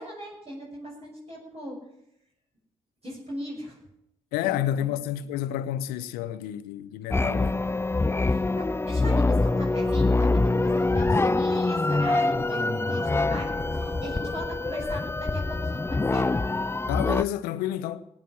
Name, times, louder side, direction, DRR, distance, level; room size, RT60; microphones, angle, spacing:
voice 1, 0.0-1.8 3.0-3.8 4.4-4.9 8.2-16.3, equal, 40° right, 6.6 m, -39 dB
voice 2, 4.3-7.7 16.9-18.1, left 12 dB, 80° left, 0.7 m, -30 dB
sound 1, 7.1-17.2, left 2 dB, 15° left, 0.5 m, -25 dB
sound 2, 9.2-14.9, equal, 20° right, 5.9 m, -46 dB
17.0 x 9.0 x 7.7 m
hypercardioid pair, 40°, 15 cm